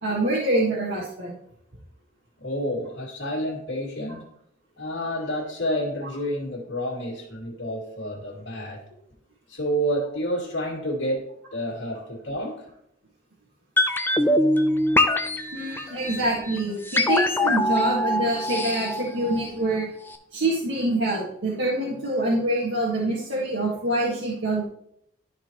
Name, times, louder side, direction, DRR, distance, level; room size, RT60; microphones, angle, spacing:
voice 1, 0.0-1.4 15.5-19.9 20.3-24.7, right 1 dB, 75° right, -6 dB, 1.6 m, -25 dB
voice 2, 2.4-4.3 4.8-8.8 9.5-12.7, equal, 70° left, -4 dB, 2.1 m, -29 dB
sound 1, 13.8-19.8 20.1-20.2, left 1 dB, 10° left, 0.4 m, -23 dB
12.0 x 4.1 x 3.0 m, 0.72 s
head